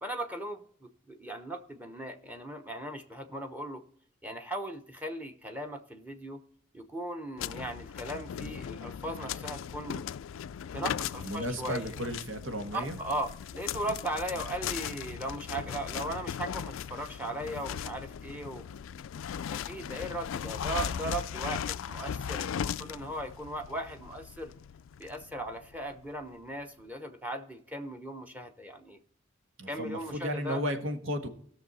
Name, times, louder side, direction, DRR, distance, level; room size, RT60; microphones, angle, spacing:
voice 1, 0.0-3.8 4.2-6.4 6.7-10.1 10.7-11.9 12.7-18.6 19.5-24.5 25.0-29.0 29.7-30.6, right 1 dB, 10° right, 6 dB, 0.9 m, -38 dB
sound 1, 7.4-26.1, left 8 dB, 80° left, 0.3 m, -38 dB
voice 2, 11.2-13.0 29.6-31.3, equal, 90° right, 6 dB, 1.5 m, -34 dB
17.5 x 6.4 x 4.0 m, 0.63 s
head